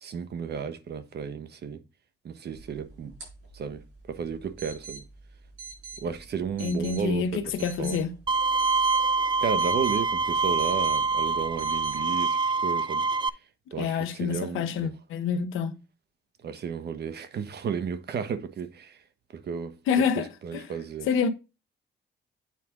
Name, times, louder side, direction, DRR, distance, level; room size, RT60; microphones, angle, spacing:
voice 1, 0.0-1.8 2.2-3.1 3.5-3.8 4.1-5.0 6.0-8.0 9.4-13.1 13.7-14.9 16.4-19.0 19.3-21.1, right 6 dB, 55° right, 1.1 m, -33 dB
sound 1, 2.5-12.0, right 4 dB, 85° right, 4.7 m, -46 dB
voice 2, 6.6-8.2 13.8-15.8 19.9-20.6 21.1-21.3, left 6 dB, 90° left, 1.0 m, -27 dB
Bowed string instrument, 8.3-13.3, right 4 dB, 25° right, 0.4 m, -25 dB
8.6 x 4.5 x 3.6 m
cardioid pair, 90°, 20 cm